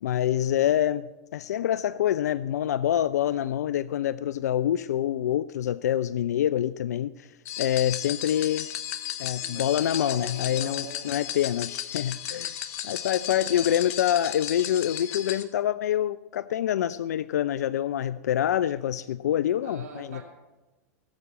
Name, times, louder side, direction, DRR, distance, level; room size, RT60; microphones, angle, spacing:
voice 1, 0.0-7.3 7.6-8.7 9.2-12.5 12.8-20.2, left 11 dB, 80° left, 17 dB, 0.4 m, -26 dB
sound 1, 7.5-15.4, left 11 dB, 65° left, 1.3 m, -35 dB
voice 2, 9.4-11.3 13.4-13.6 19.6-20.2, right 4 dB, 75° right, 0 dB, 2.5 m, -43 dB
18.0 x 8.1 x 7.4 m, 1.2 s
hypercardioid pair, 100°, 9 cm